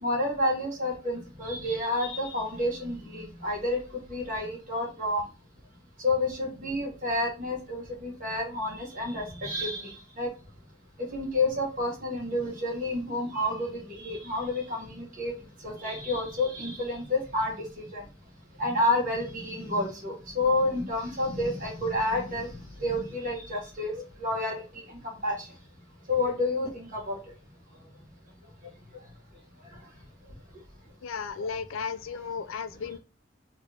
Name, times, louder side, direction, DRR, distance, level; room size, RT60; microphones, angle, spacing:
voice 1, 0.0-5.2 6.0-9.9 10.2-10.3 11.1-15.3 15.6-18.0 18.6-22.5 22.8-24.6 25.2-25.3 26.1-27.2 31.4-31.5, left 1 dB, 40° right, 1.4 m, -29 dB
voice 2, 31.0-33.0, left 6 dB, 85° left, 0.4 m, -34 dB
3.2 x 2.5 x 3.4 m
head